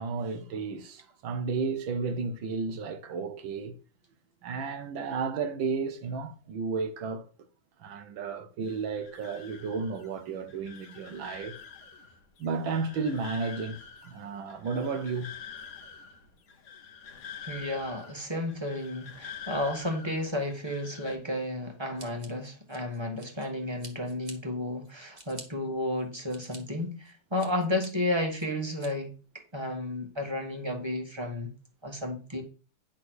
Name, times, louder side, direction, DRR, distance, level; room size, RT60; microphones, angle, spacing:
voice 1, 0.0-3.8 4.4-7.3 7.8-11.6 12.4-15.3, right 4 dB, 75° right, 1.6 m, -33 dB
sound 1, 8.6-21.2, left 7 dB, 50° left, 1.0 m, -47 dB
voice 2, 17.4-29.1 29.5-31.5 31.8-32.4, left 1 dB, 15° right, 1.4 m, -32 dB
Scissors, 22.0-23.5 23.8-24.4 24.8-25.5 26.0-26.6 27.0-27.9 28.4-28.9, right 3 dB, 35° right, 1.8 m, -48 dB
10.5 x 3.8 x 6.2 m
omnidirectional pair, 2.2 m